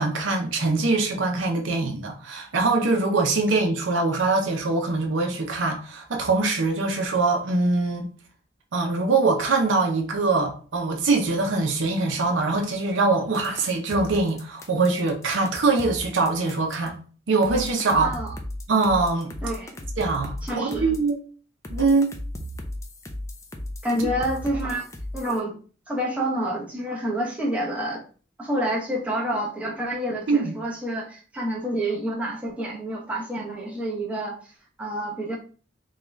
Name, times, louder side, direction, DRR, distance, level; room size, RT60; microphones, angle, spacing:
voice 1, 0.0-8.1 8.7-17.0 17.3-18.1 18.7-19.3 20.0-21.2 21.7-22.1 30.3-30.5, right 3 dB, 75° right, 0.7 m, -23 dB
sound 1, 13.3-16.9 17.4-21.1 21.6-25.4, left 1 dB, 15° left, 0.4 m, -35 dB
voice 2, 17.9-18.3 19.4-19.7 20.4-20.9 23.8-24.9 25.1-25.5 25.9-28.0 28.4-34.5 34.8-35.4, right 1 dB, 5° right, 0.8 m, -28 dB
3.6 x 2.3 x 3.1 m
head